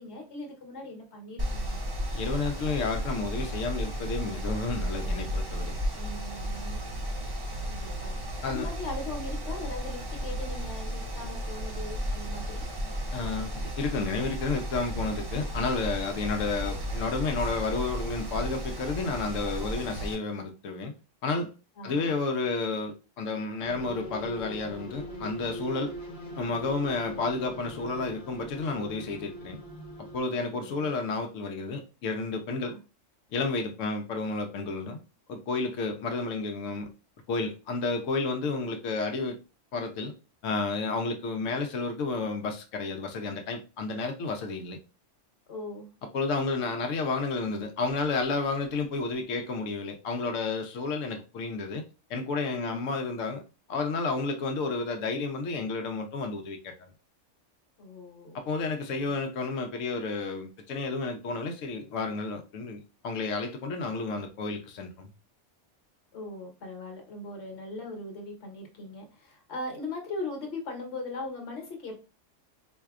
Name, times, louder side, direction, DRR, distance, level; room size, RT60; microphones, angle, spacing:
voice 1, 0.0-1.8 5.9-6.8 7.6-12.7 21.8-22.2 30.5-30.9 32.6-32.8 45.5-45.9 52.5-52.8 57.8-58.4 58.9-59.2 66.1-71.9, left 2 dB, 65° left, 1.3 m, -40 dB
Mechanical fan, 1.4-20.1, equal, 35° right, 0.3 m, -34 dB
voice 2, 2.1-5.7 8.4-8.7 13.1-20.9 21.2-21.5 21.8-25.9 26.4-29.6 30.0-32.7 33.3-35.0 35.3-36.9 37.3-39.4 39.7-40.1 40.4-44.8 46.1-51.8 52.1-53.4 53.7-56.9 58.3-65.1, left 3 dB, 80° left, 1.0 m, -31 dB
sound 1, 23.6-30.2, equal, 45° left, 0.9 m, -41 dB
4.3 x 2.7 x 2.4 m
omnidirectional pair, 1.3 m